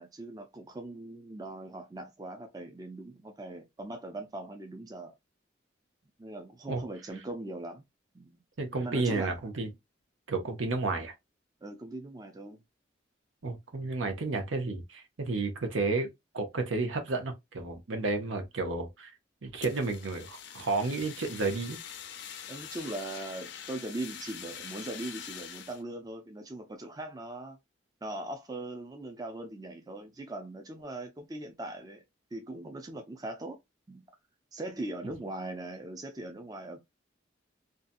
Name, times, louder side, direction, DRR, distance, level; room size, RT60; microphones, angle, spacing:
voice 1, 0.0-5.1 6.2-7.9 8.1-8.4 8.8-9.4 11.6-12.6 22.5-27.6 28.0-32.0 32.3-33.6 33.9-34.0 34.5-36.8, right 2 dB, 20° right, 0.4 m, -40 dB
voice 2, 8.6-9.7 10.3-11.1 13.4-16.1 16.3-19.1 19.4-21.8, right 3 dB, 85° right, 0.7 m, -31 dB
Fire, 19.6-25.8, left 8 dB, 65° left, 0.4 m, -44 dB
2.7 x 2.3 x 2.5 m
head